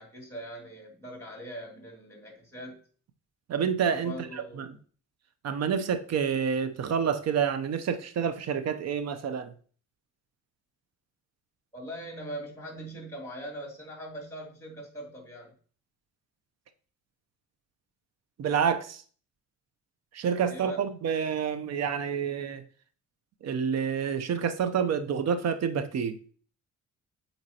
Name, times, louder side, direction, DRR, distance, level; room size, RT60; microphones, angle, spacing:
voice 1, 0.0-2.8 3.9-4.7 11.7-15.5 20.5-20.8, right 1 dB, 10° left, 2.6 m, -41 dB
voice 2, 3.5-4.7 5.4-9.5 18.4-19.0 20.1-22.6 23.4-26.2, right 7 dB, 60° right, 0.7 m, -28 dB
7.7 x 4.4 x 2.9 m
cardioid pair, 90°, 30 cm